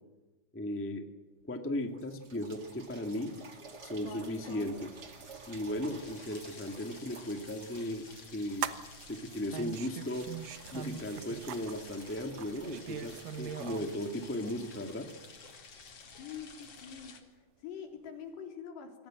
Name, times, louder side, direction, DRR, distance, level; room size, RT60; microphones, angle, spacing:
voice 1, 0.5-1.1 1.4-3.3 3.8-4.9 5.5-8.7 9.1-10.3 10.7-15.1, left 1 dB, 5° left, 5 dB, 1.0 m, -36 dB
sound 1, 1.4-1.5 1.9-17.6 18.3-18.4, right 4 dB, 35° right, 1.8 m, -54 dB
sound 2, 2.6-17.2, left 4 dB, 40° left, 3.1 m, -52 dB
sound 3, 7.5-14.0, right 9 dB, 65° right, 2.5 m, -41 dB
voice 2, 16.2-19.1, left 7 dB, 85° left, 4 dB, 5.6 m, -45 dB
27.0 x 22.5 x 7.7 m, 1.2 s
omnidirectional pair, 4.7 m